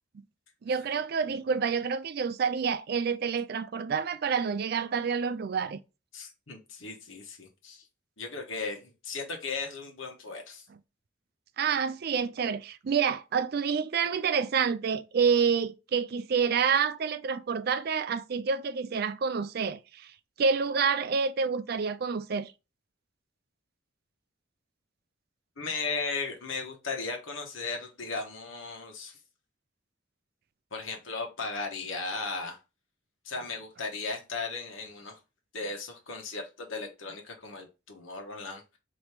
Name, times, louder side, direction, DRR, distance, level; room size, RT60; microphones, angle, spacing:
voice 1, 0.6-5.8 11.6-20.1 20.4-22.5, right 6 dB, 50° right, 0.4 m, -28 dB
voice 2, 6.1-7.8 8.2-10.6 25.6-29.2 30.7-32.6 33.2-35.2 35.5-38.6, left 4 dB, 80° left, 1.2 m, -36 dB
4.4 x 3.0 x 3.3 m
head